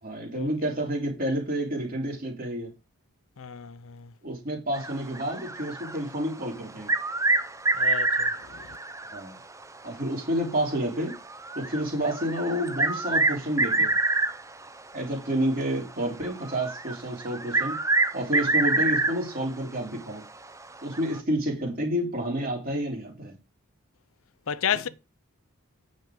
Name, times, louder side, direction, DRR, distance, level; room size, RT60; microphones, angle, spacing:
voice 1, 0.0-2.7 4.2-6.9 9.1-9.4 9.8-11.2 11.6-14.0 14.9-17.8 18.1-20.2 20.8-23.4 24.7-24.8, right 1 dB, 40° right, 3.6 m, -29 dB
voice 2, 3.4-4.1 7.7-8.8 24.5-24.9, left 8 dB, 65° left, 0.6 m, -32 dB
sound 1, 4.7-6.3 6.7-9.4 9.6-9.7 10.4-10.5 11.1-14.7 15.4-15.6 16.2-19.4 19.8-19.9 20.9-21.2, right 3 dB, 15° right, 0.6 m, -26 dB
9.4 x 6.4 x 5.1 m
head